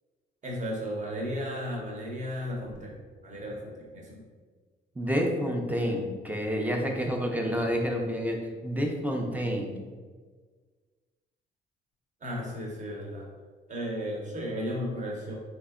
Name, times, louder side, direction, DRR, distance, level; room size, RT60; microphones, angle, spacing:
voice 1, 0.4-4.2 12.2-13.3 13.7-15.3, equal, 40° right, -2 dB, 0.9 m, -34 dB
voice 2, 5.0-9.8, equal, 10° right, 1 dB, 0.5 m, -29 dB
3.1 x 2.8 x 2.4 m, 1.5 s
cardioid pair, 90°, 20 cm